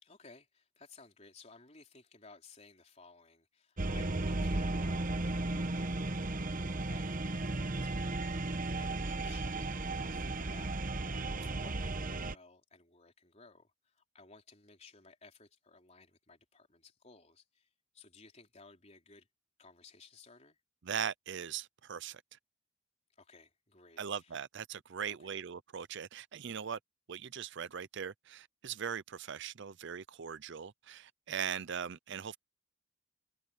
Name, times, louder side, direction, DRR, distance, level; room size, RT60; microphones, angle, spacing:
voice 1, 0.0-10.9 11.2-17.7 17.9-19.3 19.6-20.6 23.2-24.3 25.2-25.3, left 3 dB, 30° left, 4.1 m, -58 dB
sound 1, 3.8-12.3, right 2 dB, 40° right, 1.0 m, -35 dB
voice 2, 20.8-22.2 24.0-26.8 27.1-32.4, right 7 dB, 55° right, 0.5 m, -40 dB
head